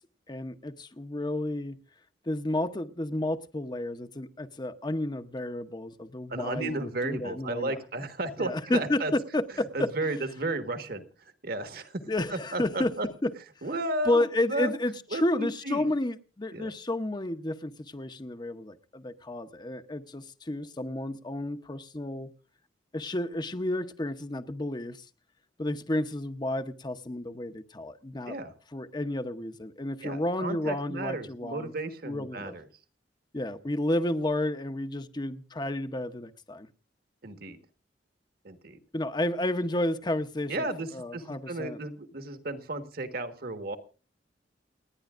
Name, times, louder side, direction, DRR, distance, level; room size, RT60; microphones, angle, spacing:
voice 1, 0.3-1.8 2.3-7.8 8.4-9.9 12.1-12.9 13.2-13.3 14.1-22.3 22.9-25.0 25.6-28.3 28.7-31.7 32.1-32.5 33.3-36.7 38.9-40.6 40.9-41.8, left 1 dB, 25° left, 9 dB, 0.7 m, -31 dB
voice 2, 6.3-9.1 9.7-12.0 12.3-13.1 13.6-14.8 15.1-15.9 16.5-16.7 28.3-28.5 30.0-32.7 37.2-37.6 38.4-38.8 40.5-43.8, right 2 dB, 55° right, 9 dB, 1.5 m, -34 dB
29.0 x 10.0 x 2.5 m, 0.35 s
head